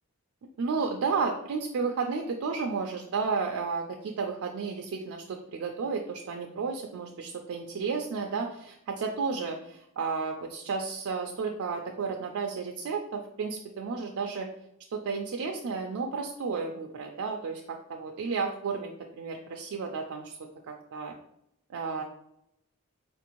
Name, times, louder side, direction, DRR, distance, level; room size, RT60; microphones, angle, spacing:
voice 1, 0.6-14.5 14.9-20.4 20.7-21.1 21.7-22.0, right 5 dB, 75° right, 2 dB, 0.4 m, -32 dB
4.2 x 2.5 x 2.9 m, 0.76 s
head